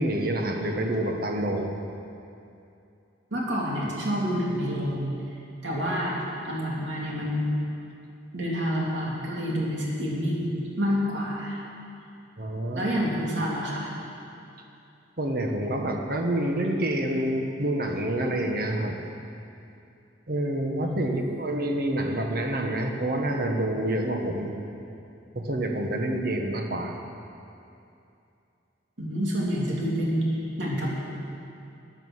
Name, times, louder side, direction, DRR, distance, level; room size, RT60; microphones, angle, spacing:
voice 1, 0.0-1.7 12.4-12.9 15.2-19.0 20.3-24.5 25.3-27.0, right 1 dB, 55° right, 3 dB, 1.2 m, -27 dB
voice 2, 3.3-5.1 5.6-7.6 8.3-11.6 12.7-13.9 20.8-21.2 29.0-30.9, equal, 80° right, -4 dB, 3.2 m, -28 dB
15.0 x 9.3 x 6.4 m, 2.7 s
head